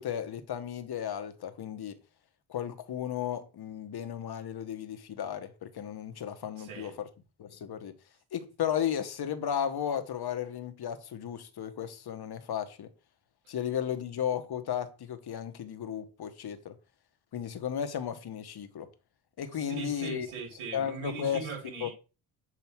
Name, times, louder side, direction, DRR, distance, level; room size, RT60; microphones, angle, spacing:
voice 1, 0.0-2.0 2.5-7.1 7.4-7.9 8.3-12.9 13.5-16.7 17.3-18.9 19.4-20.3 20.7-21.4 21.8-21.9, left 9 dB, 50° left, 1.1 m, -34 dB
voice 2, 6.6-6.9 19.7-21.9, right 5 dB, 70° right, 3.4 m, -40 dB
7.3 x 3.0 x 4.5 m
supercardioid pair, 70°, 49 cm